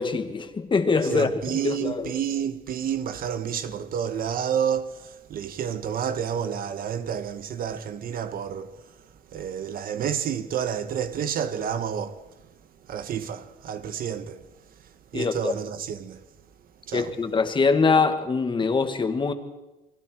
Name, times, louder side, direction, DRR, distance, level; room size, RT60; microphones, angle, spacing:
voice 1, 0.0-2.1 15.1-15.5 16.9-19.3, left 4 dB, 30° left, 2.3 m, -23 dB
voice 2, 1.1-8.8 9.3-12.3 12.9-14.5 15.1-16.2 16.9-17.1, right 8 dB, 60° right, 1.7 m, -30 dB
29.5 x 21.5 x 4.8 m
cardioid pair, 110°, 17 cm